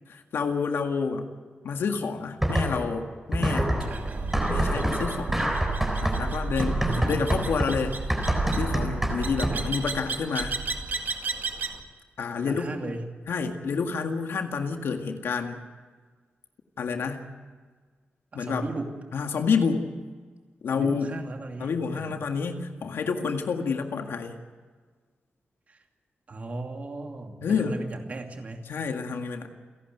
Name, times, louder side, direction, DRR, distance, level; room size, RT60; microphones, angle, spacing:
voice 1, 0.3-1.3 1.6-3.8 4.5-5.6 6.0-8.0 8.6-10.6 12.2-12.9 13.3-15.6 16.8-17.3 18.3-18.7 19.1-19.9 20.6-21.1 21.6-24.4 27.4-27.8 28.7-29.5, left 5 dB, 80° left, 5 dB, 1.9 m, -29 dB
sound 1, 2.4-3.0 3.3-9.8, equal, 5° right, 3.9 m, -28 dB
sound 2, 3.8-11.8, right 3 dB, 55° right, 2.1 m, -31 dB
voice 2, 3.9-4.4 6.8-7.5 9.5-9.8 12.4-13.1 18.3-18.9 20.7-22.2 25.7-25.8 26.3-28.7, right 2 dB, 40° right, 3 dB, 2.7 m, -37 dB
30.0 x 11.5 x 9.4 m, 1.5 s
wide cardioid pair, 150°, 4 cm